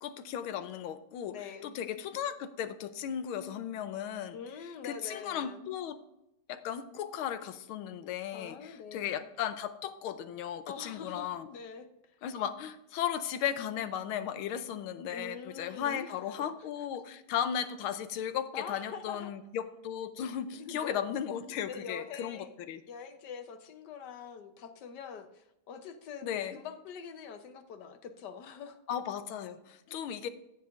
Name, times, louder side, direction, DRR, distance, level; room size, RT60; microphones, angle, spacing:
voice 1, 0.0-4.4 4.8-6.0 6.5-11.5 12.2-22.8 26.2-26.6 28.9-30.3, left 9 dB, 80° left, 11 dB, 1.5 m, -36 dB
voice 2, 1.2-1.8 4.3-5.6 8.3-9.3 10.7-11.9 15.1-16.1 16.4-16.5 18.5-19.3 20.6-21.0 21.5-22.5 22.9-28.8, left 6 dB, 65° left, 8 dB, 1.3 m, -44 dB
17.0 x 5.8 x 2.5 m, 0.87 s
omnidirectional pair, 2.3 m